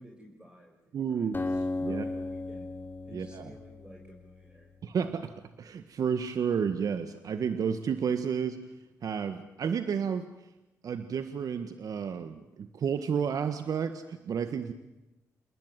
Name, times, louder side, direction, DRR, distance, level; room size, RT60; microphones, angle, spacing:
voice 1, 0.0-2.7 3.0-4.7, equal, 15° right, 0 dB, 6.4 m, -52 dB
voice 2, 0.9-1.4 1.8-2.0 3.1-3.5 4.8-5.3 5.6-8.6 9.0-10.2 10.8-14.7, right 7 dB, 65° right, 9 dB, 1.7 m, -31 dB
Acoustic guitar, 1.3-4.9, left 2 dB, 30° left, 3.7 m, -36 dB
29.0 x 20.5 x 9.3 m, 0.99 s
supercardioid pair, 60°, 7 cm